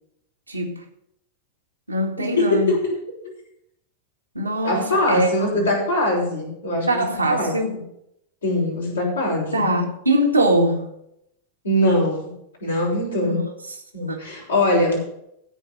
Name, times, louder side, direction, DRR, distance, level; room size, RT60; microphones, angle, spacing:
voice 1, 0.5-0.8 1.9-2.7 4.3-5.7 6.9-7.8 9.5-10.9 13.2-13.8 14.1-14.2, right 1 dB, 85° right, 1 dB, 2.0 m, -22 dB
voice 2, 2.2-2.9 4.6-7.0 7.3-7.8 8.4-9.6 11.6-12.3 12.6-13.4 13.9-15.0, left 1 dB, 75° left, -3 dB, 5.6 m, -22 dB
15.5 x 5.4 x 7.4 m, 0.76 s
figure-of-eight pair, 90°, 0 cm